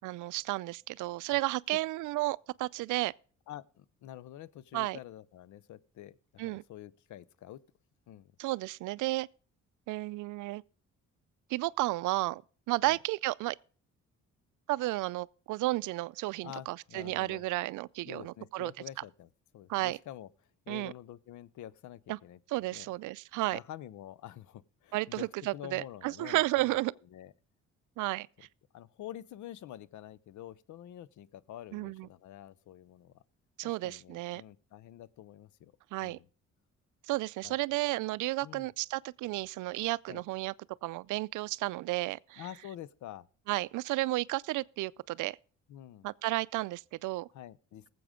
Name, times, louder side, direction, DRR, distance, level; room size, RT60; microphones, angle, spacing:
voice 1, 0.0-3.1 4.7-5.0 6.4-6.6 8.4-9.3 9.9-10.6 11.5-12.4 12.7-13.6 14.7-18.7 19.7-20.0 20.7-20.9 22.1-22.2 22.5-23.6 24.9-26.9 28.0-28.3 31.7-32.1 33.6-34.4 35.9-36.2 37.1-40.5 40.8-42.5 43.5-45.4 46.0-47.3, right 19 dB, 85° right, 0.4 m, -32 dB
voice 2, 3.5-7.6 8.1-8.3 12.9-13.0 16.4-17.4 18.1-20.3 20.7-22.4 22.7-22.9 23.5-25.3 25.5-26.8 27.1-27.3 28.7-33.1 33.6-35.7 36.0-36.3 37.4-37.6 38.4-38.7 40.1-40.2 42.4-43.3 45.7-46.1 47.3-47.9, left 12 dB, 75° left, 0.7 m, -47 dB
18.0 x 7.8 x 3.7 m
cardioid pair, 90°, 30 cm